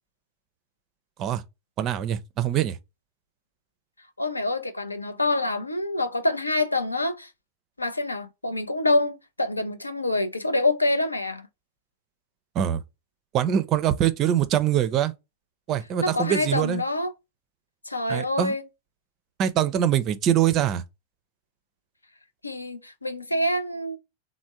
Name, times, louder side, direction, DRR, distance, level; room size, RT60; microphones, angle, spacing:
voice 1, 1.8-2.8 12.5-12.8 13.3-15.1 15.7-16.8 18.1-18.6 19.4-20.8, right 10 dB, 35° right, 0.4 m, -23 dB
voice 2, 4.2-7.3 7.8-11.5 16.0-17.1 17.9-18.6 22.4-24.0, left 2 dB, 85° left, 0.5 m, -26 dB
3.4 x 2.1 x 4.2 m
figure-of-eight pair, 90°, 0 cm